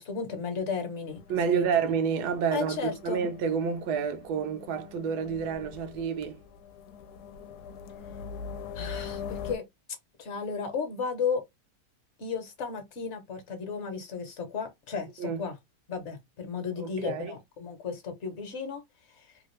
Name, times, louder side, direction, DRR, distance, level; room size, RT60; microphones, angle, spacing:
voice 1, 0.0-1.6 2.5-3.3 8.7-9.6 10.2-11.4 12.2-15.5 15.9-18.8 19.1-19.4, left 5 dB, 50° left, 1.0 m, -34 dB
sound 1, 1.1-9.6, left 6 dB, 80° left, 1.1 m, -43 dB
voice 2, 1.3-6.4 15.2-15.4 16.8-17.4, right 6 dB, 85° right, 1.2 m, -29 dB
3.2 x 2.4 x 3.1 m
omnidirectional pair, 1.7 m